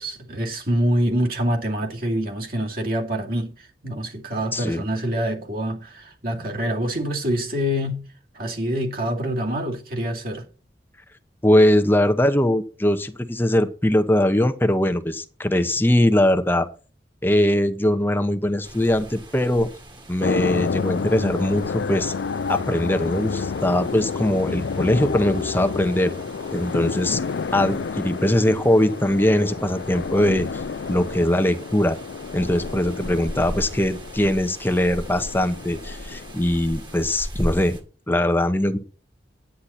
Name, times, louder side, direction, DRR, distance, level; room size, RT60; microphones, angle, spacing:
voice 1, 0.0-8.0 8.3-10.4, equal, 55° right, 2.6 m, -26 dB
voice 2, 4.5-4.8 11.4-16.7 17.2-19.7 20.1-22.1 22.5-26.1 26.5-27.2 27.5-30.6 30.9-32.0 32.3-37.8 38.1-38.8, left 1 dB, 10° left, 0.9 m, -21 dB
sound 1, 18.6-37.8, equal, 30° right, 1.8 m, -39 dB
sound 2, 20.2-37.0, left 5 dB, 85° left, 0.4 m, -30 dB
10.0 x 9.4 x 4.3 m
head